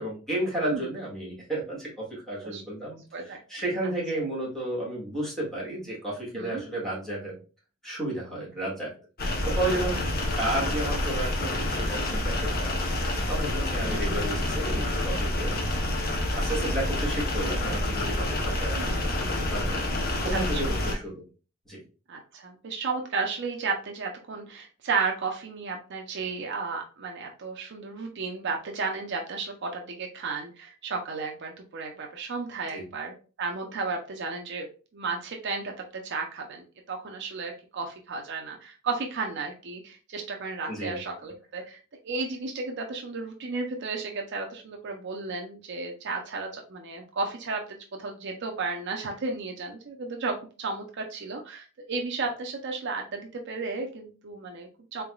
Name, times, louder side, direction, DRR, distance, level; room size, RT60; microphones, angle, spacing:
voice 1, 0.0-7.3 7.8-8.9 9.2-12.9 13.3-15.6 16.3-19.8 20.2-21.2 21.6-21.8 32.7-32.8 40.7-41.0 41.5-41.6, right 1 dB, ahead, -6 dB, 1.7 m, -32 dB
sound 1, 9.2-20.9, left 1 dB, 45° left, 0.8 m, -28 dB
voice 2, 20.3-20.9 22.1-34.7 34.9-41.8 42.0-55.0, right 4 dB, 55° right, 2 dB, 0.6 m, -33 dB
3.8 x 3.4 x 2.3 m, 0.35 s
head